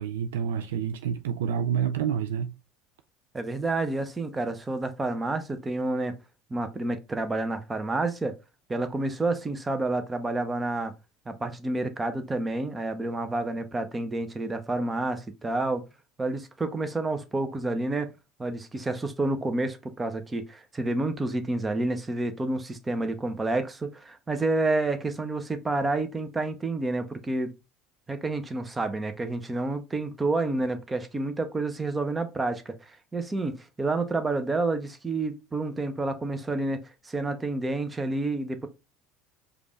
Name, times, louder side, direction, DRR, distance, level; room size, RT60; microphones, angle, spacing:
voice 1, 0.0-2.5, right 8 dB, 75° right, 0.4 m, -28 dB
voice 2, 3.3-6.2 6.5-8.3 8.7-10.9 11.3-15.8 16.2-18.1 18.4-27.5 28.1-38.7, right 2 dB, 20° right, 0.8 m, -29 dB
5.0 x 2.5 x 3.1 m
hypercardioid pair, 70°, 0 cm